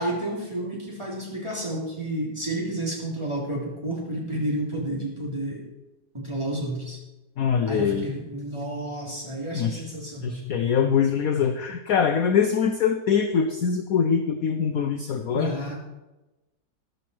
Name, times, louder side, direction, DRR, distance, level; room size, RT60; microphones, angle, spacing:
voice 1, 0.0-5.6 6.1-7.0 7.7-10.7 15.3-15.8, right 1 dB, 15° right, -3 dB, 3.3 m, -31 dB
voice 2, 7.4-8.1 9.5-9.8 10.2-15.5, left 7 dB, 60° left, 7 dB, 1.0 m, -23 dB
13.5 x 11.5 x 4.6 m, 1.1 s
omnidirectional pair, 2.0 m